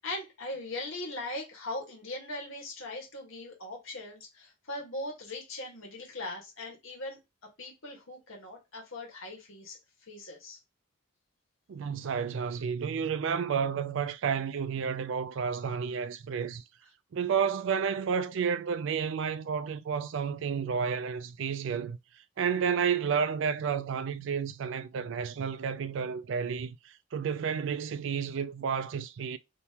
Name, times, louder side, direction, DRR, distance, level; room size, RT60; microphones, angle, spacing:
voice 1, 0.0-7.2 7.6-9.8 10.1-10.6, left 2 dB, 65° left, 1.5 m, -40 dB
voice 2, 11.7-16.6 17.1-22.0 22.4-29.4, right 6 dB, 55° right, 0.3 m, -31 dB
3.5 x 2.9 x 2.8 m
head